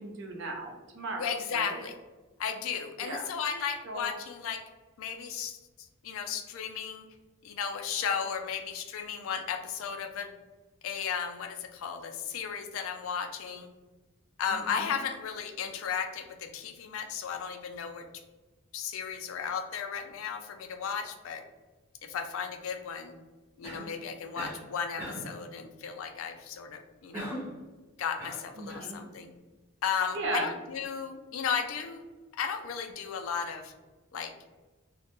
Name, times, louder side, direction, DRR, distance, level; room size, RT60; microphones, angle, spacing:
voice 1, 0.0-1.8 3.0-3.3 3.9-4.1 14.5-14.9 28.6-29.0 30.1-30.5, right 2 dB, 60° right, 2 dB, 0.5 m, -36 dB
voice 2, 1.2-1.9 2.4-4.6 5.0-7.0 7.4-10.4 10.8-13.7 14.4-18.1 18.7-21.4 22.0-23.2 23.6-27.4 28.0-29.3 29.8-32.0 32.3-33.7 34.1-34.3, left 7 dB, 75° left, 6 dB, 0.3 m, -35 dB
Cough, 23.6-24.0 24.4-24.7 25.0-25.4 27.1-27.6 28.2-28.9, equal, 10° right, 0.6 m, -39 dB
2.1 x 2.1 x 2.9 m, 1.2 s
head